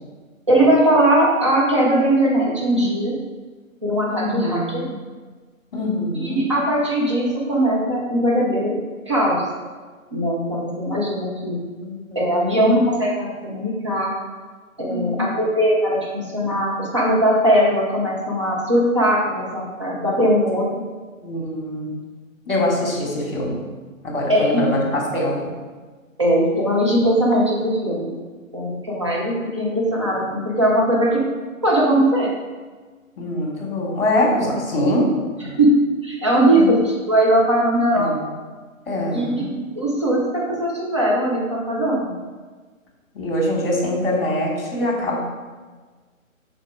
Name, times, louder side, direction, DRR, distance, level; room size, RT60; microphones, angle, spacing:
voice 1, 0.5-3.1 3.8-4.9 6.1-8.8 9.0-9.4 10.1-11.6 12.1-14.1 14.8-20.8 24.3-24.6 26.2-28.1 28.5-31.2 31.6-32.3 35.6-35.7 36.0-38.1 39.1-39.4 39.7-42.2, right 1 dB, 20° right, -4 dB, 0.7 m, -19 dB
voice 2, 4.1-4.8 5.7-6.4 11.8-12.7 14.9-15.3 21.2-22.0 22.5-23.6 24.0-25.5 33.2-35.1 35.4-35.6 36.3-36.7 37.9-38.3 38.9-39.6 43.1-45.2, left 1 dB, 45° left, -1 dB, 1.8 m, -23 dB
5.8 x 3.6 x 4.7 m, 1.4 s
hypercardioid pair, 170°, 41 cm